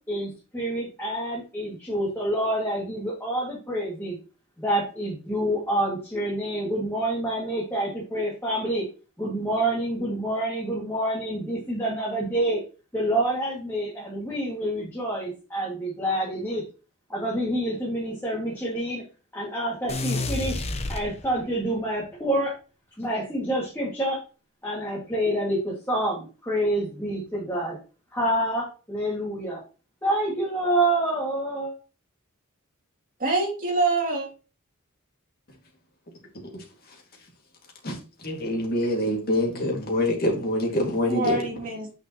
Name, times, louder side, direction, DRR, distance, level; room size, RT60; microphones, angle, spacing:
voice 1, 0.1-4.2 4.6-8.9 9.2-12.6 12.9-16.6 17.1-19.0 19.3-20.6 20.9-22.5 23.0-24.2 24.6-27.8 28.1-29.6 30.0-31.7, right 1 dB, 10° left, 2.2 m, -27 dB
sound 1, 19.9-21.7, left 2 dB, 30° left, 0.9 m, -30 dB
voice 2, 33.2-34.3 41.1-42.0, right 3 dB, 40° right, 2.6 m, -25 dB
voice 3, 36.4-37.0 37.8-41.5, left 1 dB, 45° left, 2.2 m, -26 dB
8.9 x 5.2 x 3.0 m
head